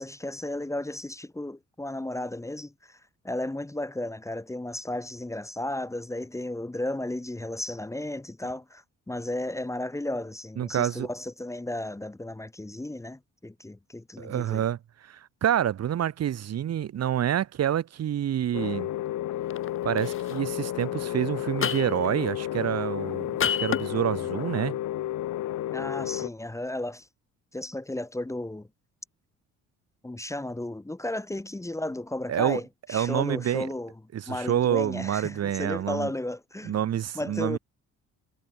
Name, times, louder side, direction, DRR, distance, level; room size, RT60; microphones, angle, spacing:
voice 1, 0.0-3.0 3.2-14.6 25.7-27.1 27.5-28.7 30.0-33.9 34.3-36.8 37.1-37.6, left 1 dB, 10° left, 1.1 m, -34 dB
voice 2, 10.6-11.1 14.2-18.9 19.8-24.8 32.3-32.6 32.9-33.7 34.1-36.1 36.6-37.6, right 10 dB, 55° right, 1.2 m, -28 dB
sound 1, 18.5-26.3, left 13 dB, 75° left, 2.1 m, -32 dB
sound 2, 19.5-19.7 20.0-20.3 21.6-22.1 23.4-23.9, left 8 dB, 45° left, 1.0 m, -28 dB
cardioid pair, 90°, 30 cm